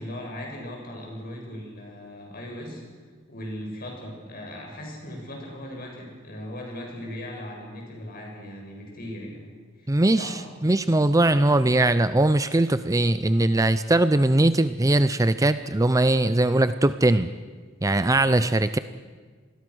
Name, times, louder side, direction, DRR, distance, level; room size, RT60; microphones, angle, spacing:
voice 1, 0.0-2.8 3.3-9.5 9.8-10.4, left 1 dB, 50° left, 0 dB, 7.1 m, -38 dB
voice 2, 9.9-10.3 10.6-17.3 17.8-18.8, right 2 dB, 15° right, 12 dB, 0.6 m, -20 dB
27.0 x 21.0 x 6.4 m, 1.5 s
head